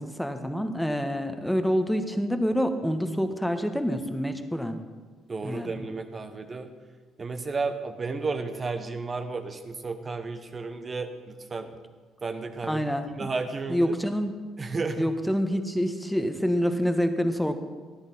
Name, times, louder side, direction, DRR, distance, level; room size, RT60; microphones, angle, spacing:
voice 1, 0.0-4.8 5.4-5.7 12.7-13.3 13.7-14.4 14.7-17.5, equal, 5° left, 7 dB, 1.3 m, -27 dB
voice 2, 5.3-6.7 7.2-11.7 12.2-12.8 13.2-14.0 14.6-15.0, right 4 dB, 35° right, 7 dB, 1.2 m, -32 dB
14.5 x 10.5 x 4.3 m, 1.4 s
hypercardioid pair, 50°, 0 cm